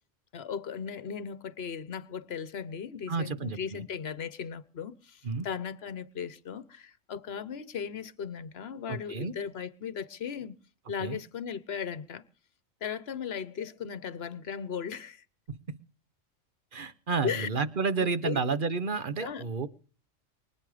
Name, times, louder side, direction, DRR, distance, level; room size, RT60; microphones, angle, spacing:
voice 1, 0.3-10.6 10.9-12.2 12.8-15.2 17.2-17.5 18.2-18.4 19.2-19.4, left 7 dB, 55° left, 1.2 m, -37 dB
voice 2, 3.1-3.8 5.2-5.5 8.9-9.3 11.0-11.2 15.5-15.8 16.7-19.7, right 4 dB, 45° right, 1.2 m, -31 dB
24.0 x 9.3 x 5.0 m
omnidirectional pair, 1.3 m